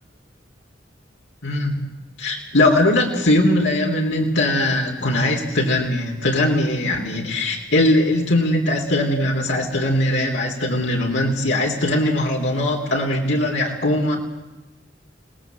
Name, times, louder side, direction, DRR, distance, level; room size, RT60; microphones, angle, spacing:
voice 1, 1.4-1.8 2.2-14.2, left 1 dB, 85° left, 0 dB, 3.5 m, -20 dB
29.5 x 18.5 x 7.8 m, 1.1 s
head